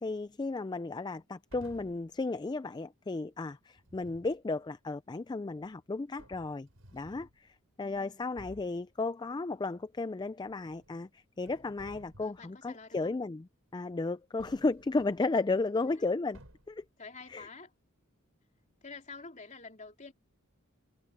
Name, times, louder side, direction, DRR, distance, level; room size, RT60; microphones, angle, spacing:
voice 1, 0.0-13.5 13.7-16.4 16.7-16.8 17.3-17.5, left 3 dB, 20° left, 0.3 m, -34 dB
sound 1, 1.5-2.1 3.8-4.4 5.6-5.7 6.2-7.4 7.9-8.0 8.4-8.8 10.4-11.1 11.4-12.5 14.4-15.4 16.3-16.9, right 1 dB, 75° right, 6.7 m, -55 dB
voice 2, 7.8-8.2 12.2-13.1 15.8-16.1 17.0-17.7 18.8-20.1, left 4 dB, 35° left, 3.4 m, -49 dB
head